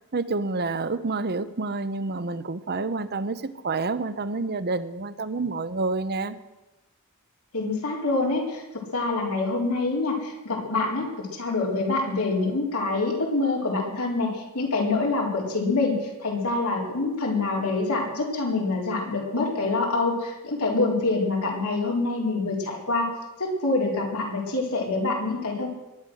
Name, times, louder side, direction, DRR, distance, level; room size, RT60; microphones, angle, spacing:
voice 1, 0.1-6.4, right 3 dB, 45° right, 13 dB, 0.8 m, -28 dB
voice 2, 7.5-23.1 23.4-25.7, left 3 dB, 80° left, -1 dB, 4.2 m, -26 dB
22.5 x 10.0 x 6.3 m, 1.1 s
head